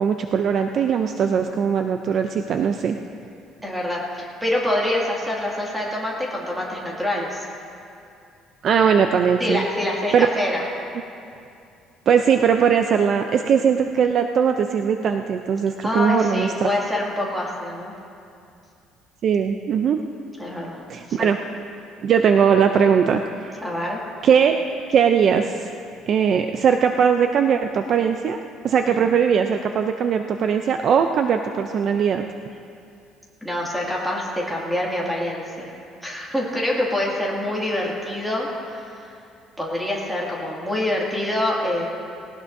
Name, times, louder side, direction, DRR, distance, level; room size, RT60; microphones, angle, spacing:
voice 1, 0.0-3.0 8.6-9.6 10.1-10.3 12.1-16.7 19.2-20.0 20.9-21.4 22.0-23.5 24.2-24.6 24.9-25.7 26.1-28.4 28.6-32.2, right 7 dB, 40° right, 6 dB, 0.4 m, -20 dB
voice 2, 3.6-7.5 9.4-10.6 15.8-17.9 20.4-20.8 21.2-21.3 23.6-24.0 28.8-28.9 33.4-35.7 36.0-39.1 39.6-41.8, left 1 dB, 5° right, -4 dB, 2.2 m, -26 dB
19.0 x 18.0 x 2.7 m, 2.5 s
cardioid pair, 175°, 0 cm